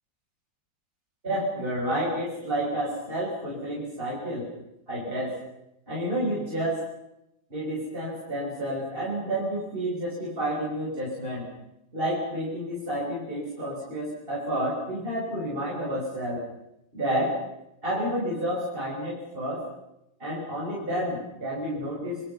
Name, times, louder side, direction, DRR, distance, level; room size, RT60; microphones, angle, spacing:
voice 1, 1.2-4.5 4.9-5.3 5.9-6.8 7.5-11.5 11.9-16.4 16.9-17.3 17.8-19.6 20.2-22.3, right 1 dB, 30° right, -5 dB, 6.3 m, -30 dB
30.0 x 22.5 x 5.7 m, 0.84 s
omnidirectional pair, 2.0 m